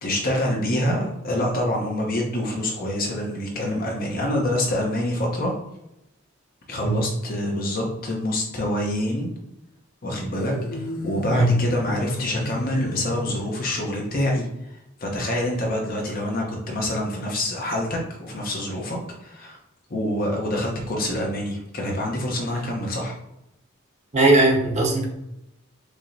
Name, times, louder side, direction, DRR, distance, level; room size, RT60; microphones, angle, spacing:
voice 1, 0.0-5.5 6.7-9.3 10.0-14.5 15.0-19.6 19.9-23.2, left 1 dB, 45° left, 0 dB, 0.9 m, -26 dB
sound 1, 10.3-13.8, left 1 dB, 80° left, 0.5 m, -32 dB
voice 2, 24.1-25.1, right 2 dB, 35° right, -1 dB, 0.8 m, -18 dB
4.8 x 3.0 x 2.7 m, 0.85 s
head